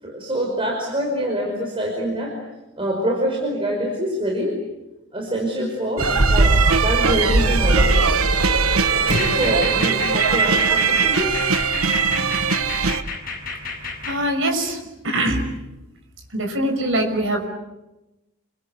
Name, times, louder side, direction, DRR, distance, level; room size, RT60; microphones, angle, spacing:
voice 1, 0.0-2.4 2.8-4.6 5.1-8.2 9.1-11.4, equal, 25° right, 0 dB, 5.4 m, -25 dB
sound 1, 6.0-13.0, right 4 dB, 75° right, 1.3 m, -19 dB
sound 2, 7.8-14.2, left 3 dB, 40° left, 7.1 m, -31 dB
voice 2, 14.1-14.8 15.0-15.4 16.3-17.5, right 1 dB, 60° right, 4 dB, 5.8 m, -22 dB
29.0 x 24.0 x 8.4 m, 0.99 s
head